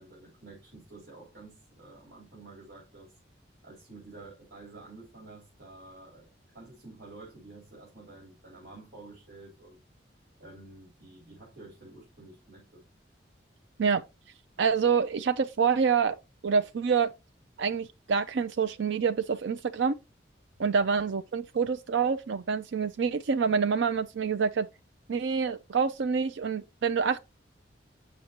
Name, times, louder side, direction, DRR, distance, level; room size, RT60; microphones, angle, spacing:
voice 1, 0.0-3.1 3.6-9.8 10.4-12.8 20.6-20.7, right 2 dB, 55° right, 3.4 m, -50 dB
voice 2, 14.6-16.2 16.4-17.1 17.6-19.9 20.6-24.7 25.1-27.2, right 6 dB, 70° right, 0.4 m, -27 dB
7.9 x 6.1 x 2.9 m
head